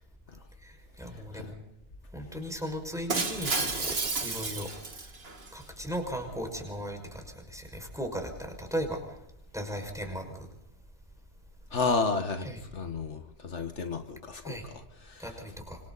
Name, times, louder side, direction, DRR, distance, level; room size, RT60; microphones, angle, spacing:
voice 1, 0.6-1.5 2.1-4.0 4.2-4.7 5.5-9.0 9.5-10.5 12.4-12.6 14.4-14.6 15.2-15.8, equal, 5° right, 3 dB, 5.7 m, -37 dB
Shatter, 3.1-5.5, right 3 dB, 55° right, 2.0 m, -31 dB
voice 2, 11.7-15.3, left 4 dB, 75° left, 6 dB, 1.7 m, -32 dB
26.5 x 26.0 x 4.1 m, 0.80 s
omnidirectional pair, 1.2 m